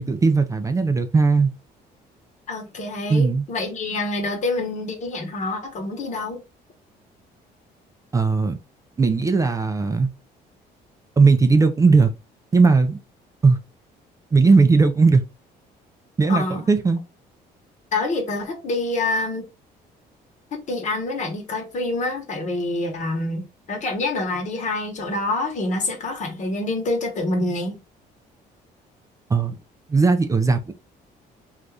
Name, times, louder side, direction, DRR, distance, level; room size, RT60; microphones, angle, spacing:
voice 1, 0.0-1.5 3.1-3.5 8.1-8.6 9.0-10.1 11.2-12.1 12.5-13.0 13.4-13.6 14.3-15.2 16.2-17.0 29.3-29.5 29.9-30.7, right 4 dB, 20° right, 0.3 m, -17 dB
voice 2, 2.5-6.4 16.3-16.6 17.9-19.4 20.5-27.8, left 2 dB, 45° left, 1.1 m, -26 dB
2.6 x 2.4 x 3.3 m
cardioid pair, 110°, 17 cm